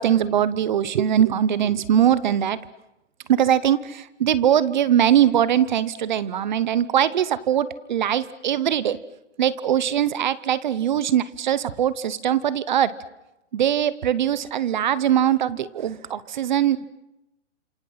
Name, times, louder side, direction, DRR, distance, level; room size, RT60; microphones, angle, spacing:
voice 1, 0.0-2.6 3.3-9.0 9.4-12.9 13.5-16.8, right 10 dB, 40° right, 18 dB, 0.9 m, -21 dB
30.0 x 27.5 x 5.7 m, 0.92 s
hypercardioid pair, 165°, 36 cm